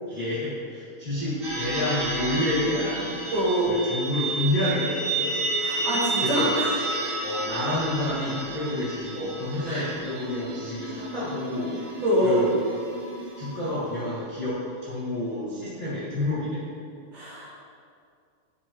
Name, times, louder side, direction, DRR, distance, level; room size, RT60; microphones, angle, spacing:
voice 1, 0.0-3.2 3.7-5.4 6.2-6.5 7.2-11.8 12.2-12.5 13.4-16.7, left 1 dB, 40° left, -10 dB, 1.2 m, -29 dB
sound 1, 1.4-13.9, right 2 dB, 45° right, 2.7 m, -31 dB
voice 2, 3.3-3.7 5.6-6.7 7.0-7.1 9.7-9.9 12.0-12.4 17.1-17.7, equal, 65° right, -7 dB, 2.4 m, -25 dB
12.5 x 5.4 x 3.0 m, 2.3 s
omnidirectional pair, 4.7 m